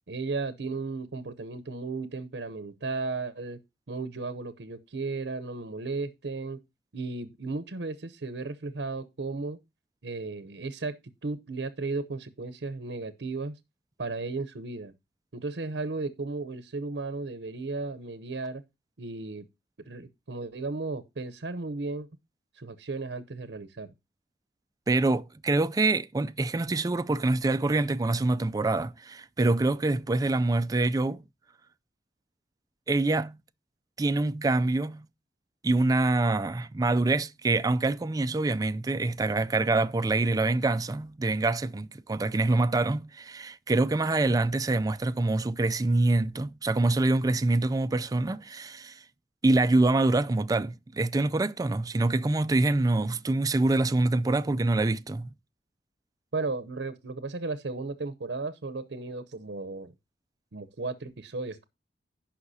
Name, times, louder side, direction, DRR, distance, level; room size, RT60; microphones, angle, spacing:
voice 1, 0.1-3.6 3.9-6.6 6.9-9.6 10.0-10.9 11.2-13.6 14.0-14.9 15.3-18.6 19.0-19.5 19.9-22.1 22.5-23.9 56.3-59.9 60.5-61.7, right 3 dB, 85° right, 0.8 m, -35 dB
voice 2, 24.9-31.2 32.9-33.4 34.0-35.1 35.6-49.0 49.4-55.3, right 2 dB, 20° right, 0.4 m, -25 dB
16.0 x 5.7 x 2.7 m
head